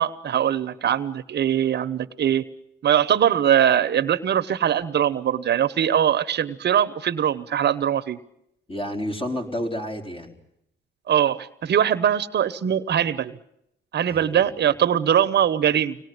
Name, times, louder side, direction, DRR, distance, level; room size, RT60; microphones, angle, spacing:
voice 1, 0.0-2.4 2.8-8.2 11.1-13.4 13.9-16.0, right 9 dB, 60° right, 12 dB, 1.0 m, -21 dB
voice 2, 8.7-10.3 14.1-14.4, equal, 25° left, 3 dB, 4.3 m, -30 dB
25.0 x 19.0 x 9.5 m, 0.79 s
cardioid pair, 90°, 20 cm